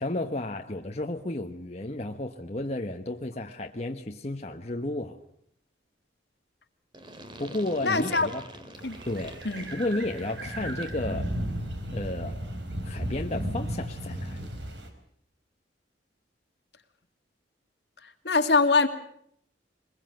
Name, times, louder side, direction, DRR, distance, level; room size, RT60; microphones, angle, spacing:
voice 1, 0.0-5.2 7.4-8.4 9.1-9.4 9.7-11.3 11.9-12.4 12.8-14.5, left 2 dB, 35° left, 3 dB, 1.2 m, -32 dB
sound 1, 6.9-11.1, right 1 dB, 25° right, 2.3 m, -46 dB
voice 2, 7.8-8.3 8.8-9.0 9.4-9.7 18.0-18.9, left 3 dB, 65° left, 6 dB, 2.3 m, -23 dB
sound 2, 8.8-14.9, right 1 dB, 80° right, 4.4 m, -35 dB
23.0 x 21.5 x 7.8 m, 0.69 s
head